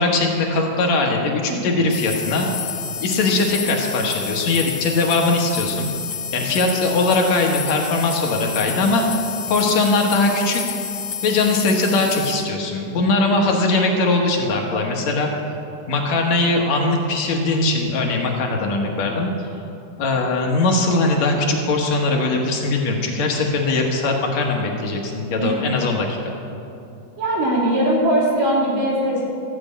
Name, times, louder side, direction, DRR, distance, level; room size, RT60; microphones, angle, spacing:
voice 1, 0.0-2.5 3.0-5.9 6.3-9.0 9.5-10.6 11.2-15.3 15.9-19.3 20.0-26.4, left 2 dB, 60° left, 1 dB, 2.3 m, -20 dB
sound 1, 1.9-12.4, left 7 dB, 75° left, 1.1 m, -29 dB
voice 2, 27.2-29.2, right 1 dB, 70° right, -4 dB, 4.5 m, -20 dB
13.5 x 7.8 x 8.6 m, 2.8 s
omnidirectional pair, 3.9 m